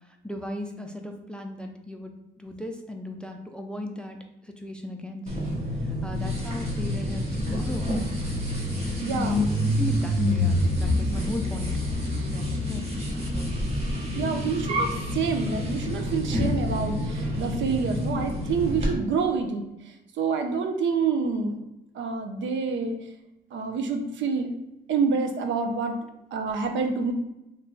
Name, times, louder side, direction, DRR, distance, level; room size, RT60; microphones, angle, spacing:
voice 1, 0.2-4.2 4.4-5.5 5.8-7.9 9.4-11.8 12.3-12.9 13.2-13.5, left 1 dB, 5° left, 3 dB, 0.4 m, -37 dB
sound 1, 5.3-18.9, left 1 dB, 35° right, 1.0 m, -27 dB
voice 2, 9.0-9.4 14.2-19.7 20.2-21.6 21.9-23.0 23.5-24.5 24.9-25.9 26.3-27.1, right 5 dB, 70° right, 5 dB, 0.6 m, -27 dB
3.1 x 2.2 x 3.8 m, 0.93 s
cardioid pair, 90°, 20 cm